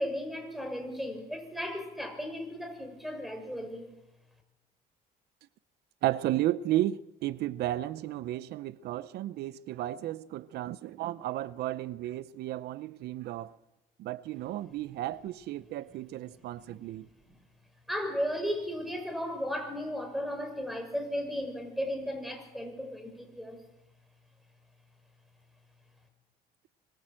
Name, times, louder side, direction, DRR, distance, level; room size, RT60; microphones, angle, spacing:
voice 1, 0.0-3.9 16.3-16.4 16.7-16.8 17.9-23.6, equal, ahead, 6.7 m, -35 dB
voice 2, 6.0-13.6 14.0-17.1, right 14 dB, 75° right, 0.7 m, -33 dB
25.5 x 21.5 x 7.7 m
cardioid pair, 110°, 17 cm